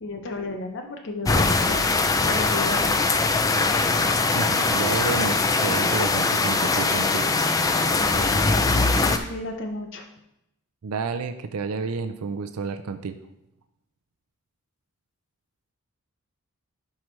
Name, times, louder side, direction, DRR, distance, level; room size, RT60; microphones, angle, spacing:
voice 1, 0.0-1.9 2.2-3.0 5.6-5.9 7.9-10.1, left 2 dB, 55° left, 4 dB, 0.7 m, -34 dB
sound 1, 1.3-9.2, left 3 dB, 15° left, 0.3 m, -21 dB
voice 2, 4.4-7.4 10.8-13.2, right 5 dB, 80° right, 8 dB, 0.5 m, -30 dB
11.5 x 4.8 x 3.2 m, 0.84 s
head